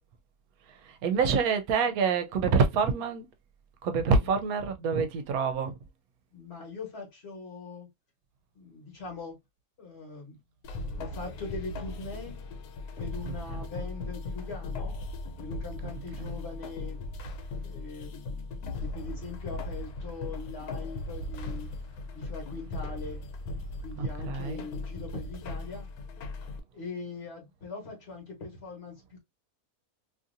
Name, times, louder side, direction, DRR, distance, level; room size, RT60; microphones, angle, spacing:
voice 1, 0.8-3.3 3.8-5.7 24.0-24.6, right 5 dB, 80° right, 1.0 m, -26 dB
voice 2, 6.3-7.9 8.5-9.4 9.8-10.4 10.9-12.4 13.0-15.0 15.4-17.0 17.6-21.7 22.1-23.2 23.8-25.9 26.7-29.2, left 4 dB, 45° left, 1.3 m, -41 dB
sound 1, 10.6-26.6, left 2 dB, 90° left, 1.1 m, -38 dB
2.7 x 2.7 x 2.5 m
omnidirectional pair, 1.6 m